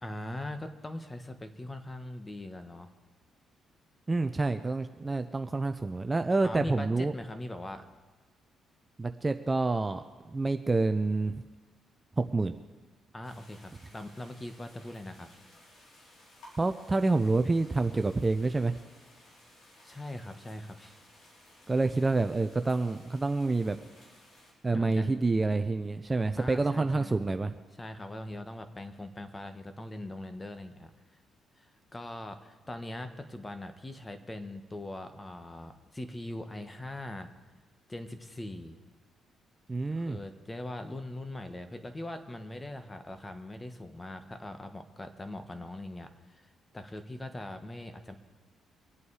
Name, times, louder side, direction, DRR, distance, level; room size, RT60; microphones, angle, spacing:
voice 1, 0.0-2.9 6.4-7.9 13.1-15.3 19.8-21.0 24.7-25.2 26.4-27.2 27.8-30.9 31.6-37.3 37.9-38.8 39.9-48.2, left 1 dB, 20° left, 8 dB, 1.4 m, -41 dB
voice 2, 4.1-7.1 9.0-10.0 10.3-11.4 12.2-12.5 16.6-18.8 21.7-23.8 24.6-27.5 39.7-40.2, right 3 dB, 20° right, 8 dB, 0.6 m, -28 dB
sound 1, 13.2-24.5, left 1 dB, 75° left, 4.4 m, -58 dB
24.5 x 8.5 x 4.8 m, 1.3 s
cardioid pair, 90°, 0 cm